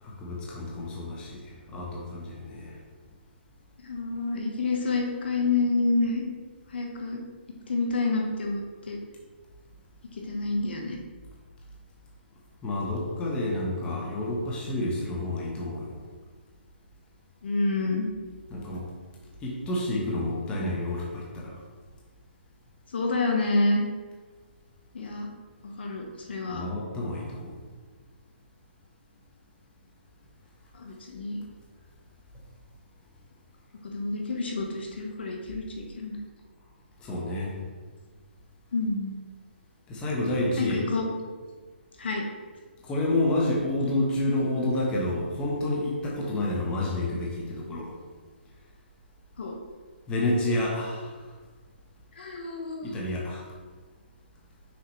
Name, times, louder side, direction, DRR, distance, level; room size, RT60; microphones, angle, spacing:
voice 1, 0.0-1.4 1.7-2.8 12.6-16.0 18.5-18.8 19.4-21.5 26.5-27.6 37.0-37.5 39.9-40.8 42.8-47.9 50.1-51.1 52.8-53.5, left 1 dB, 15° left, -4 dB, 1.1 m, -29 dB
voice 2, 3.8-6.3 6.7-7.2 7.7-9.0 10.1-11.0 17.4-18.1 22.9-23.8 24.9-25.3 25.6-26.6 30.7-31.4 33.9-36.2 38.7-39.2 40.6-41.1 42.0-42.2 49.4-49.6 52.2-52.9, left 3 dB, 65° left, 1 dB, 1.1 m, -28 dB
6.2 x 4.7 x 3.2 m, 1.4 s
hypercardioid pair, 145°, 6 cm